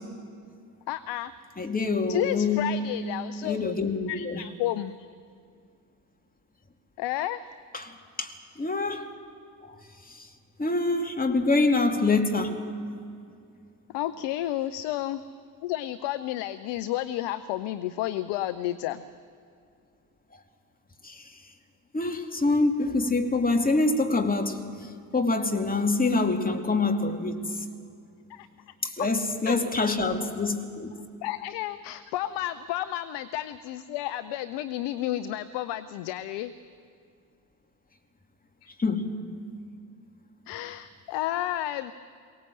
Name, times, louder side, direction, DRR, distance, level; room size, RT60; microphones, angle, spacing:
voice 1, 0.9-1.3 2.1-3.7 4.1-5.1 7.0-7.5 13.9-15.2 15.6-19.0 28.3-28.7 29.0-29.1 29.5-29.7 31.2-36.5 38.6-38.7 40.5-41.9, left 14 dB, 60° left, 0.8 m, -31 dB
voice 2, 1.6-2.7 3.4-4.4 7.7-9.1 9.6-9.8 10.0-10.3 10.6-12.6 21.0-21.3 21.9-27.4 28.8-30.9 38.8-39.2, left 3 dB, 20° left, 2.6 m, -26 dB
23.0 x 18.5 x 7.7 m
figure-of-eight pair, 45°, 47 cm